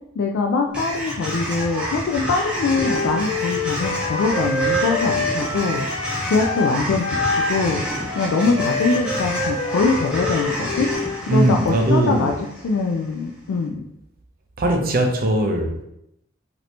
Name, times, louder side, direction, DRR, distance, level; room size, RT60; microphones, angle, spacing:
voice 1, 0.2-5.9 6.2-7.8 8.1-10.9 11.2-12.3 12.6-13.8, left 4 dB, 85° left, 1 dB, 0.3 m, -23 dB
sound 1, 0.7-13.0, equal, 5° right, 0.8 m, -29 dB
Wind instrument woodwind instrument, 2.7-6.7 7.0-11.2, left 2 dB, 65° left, 0.8 m, -26 dB
voice 2, 11.3-12.4 14.6-15.8, right 1 dB, 50° right, 3 dB, 0.5 m, -20 dB
2.8 x 2.6 x 3.2 m, 0.81 s
head